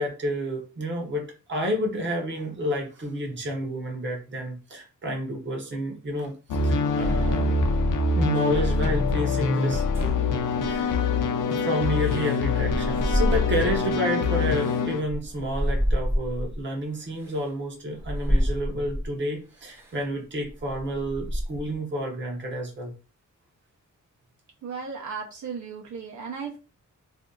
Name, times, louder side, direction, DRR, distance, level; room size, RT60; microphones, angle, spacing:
voice 1, 0.0-6.3 6.6-7.5 8.1-10.2 10.6-11.0 11.5-22.9, equal, 35° right, 1 dB, 0.8 m, -30 dB
sound 1, 6.5-15.0, left 4 dB, 80° left, 0.6 m, -24 dB
sound 2, 9.9-11.1 12.0-13.9 14.4-16.6 17.2-17.4 18.0-19.1 19.7-20.0 20.4-21.7, equal, 10° right, 0.7 m, -28 dB
voice 2, 24.6-26.6, right 5 dB, 65° right, 0 dB, 0.7 m, -35 dB
2.6 x 2.4 x 3.7 m, 0.35 s
wide cardioid pair, 170°, 31 cm